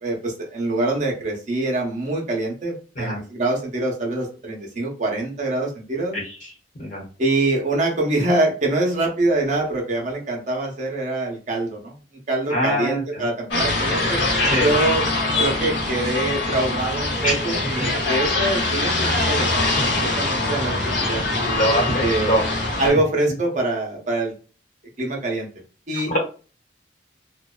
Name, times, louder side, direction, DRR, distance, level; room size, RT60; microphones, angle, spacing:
voice 1, 0.0-6.2 7.2-11.9 12.3-14.2 14.6-15.1 15.4-21.3 22.0-22.4 22.8-24.3 25.0-25.5 25.9-26.2, right 2 dB, 45° right, 0 dB, 0.7 m, -24 dB
voice 2, 12.5-13.2 14.4-14.7 17.2-17.4 19.4-19.7 21.5-22.5 22.8-23.0 25.9-26.2, equal, 45° left, -1 dB, 1.0 m, -24 dB
sound 1, 13.5-22.9, left 2 dB, 80° left, 0.9 m, -23 dB
2.6 x 2.1 x 2.3 m, 0.36 s
head